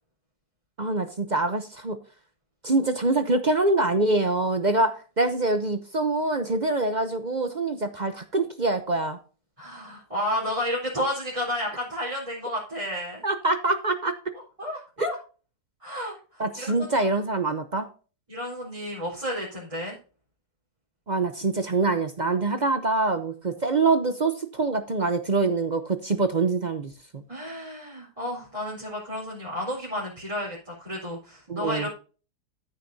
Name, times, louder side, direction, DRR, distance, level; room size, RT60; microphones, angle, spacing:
voice 1, 0.8-2.0 2.6-9.2 13.2-14.1 15.0-15.1 16.4-17.9 21.1-27.2 31.5-31.9, right 3 dB, 40° right, 9 dB, 0.7 m, -25 dB
voice 2, 9.6-13.2 14.3-15.2 15.8-17.1 18.3-20.0 27.3-31.9, left 1 dB, 20° right, -6 dB, 4.2 m, -32 dB
14.0 x 6.7 x 2.7 m, 0.36 s
omnidirectional pair, 1.7 m